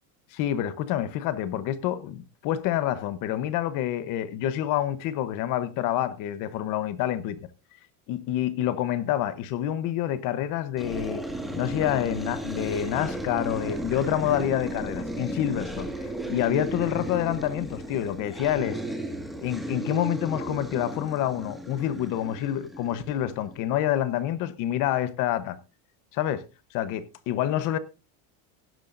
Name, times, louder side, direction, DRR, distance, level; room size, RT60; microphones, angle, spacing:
voice 1, 0.3-7.5 8.1-11.2 11.5-18.8 19.4-25.6 26.1-26.4 26.7-27.8, left 12 dB, 45° left, 0.9 m, -27 dB
sound 1, 10.8-23.7, right 1 dB, ahead, 1.7 m, -35 dB
16.5 x 10.5 x 2.5 m
cardioid pair, 165°, 46 cm